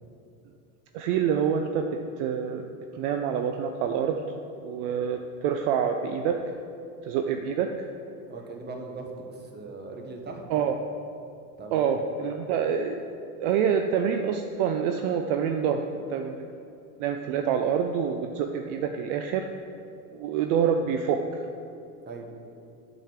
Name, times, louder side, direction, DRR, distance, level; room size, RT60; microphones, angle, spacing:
voice 1, 0.9-4.2 4.6-6.4 7.0-7.9 10.5-10.8 11.7-13.0 13.4-16.4 17.0-19.5 20.1-21.4, right 7 dB, 55° right, 5 dB, 0.6 m, -27 dB
voice 2, 8.3-10.4 11.6-11.8 22.1-22.3, right 3 dB, 20° right, 2 dB, 1.3 m, -39 dB
7.4 x 5.2 x 7.2 m, 2.6 s
hypercardioid pair, 110°, 45 cm